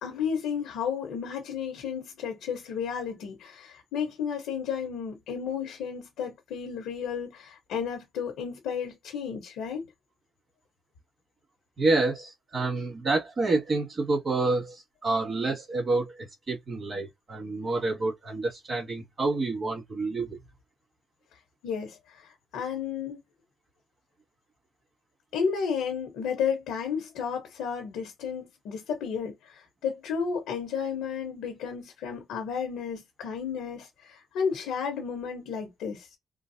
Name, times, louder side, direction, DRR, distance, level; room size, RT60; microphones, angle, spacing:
voice 1, 0.0-9.8 21.3-23.2 25.3-36.1, left 6 dB, 90° left, 1.0 m, -32 dB
voice 2, 11.8-14.8 15.0-16.2 16.5-20.4, right 3 dB, 35° right, 2.0 m, -28 dB
3.8 x 2.0 x 2.7 m
cardioid pair, 90°, 0 cm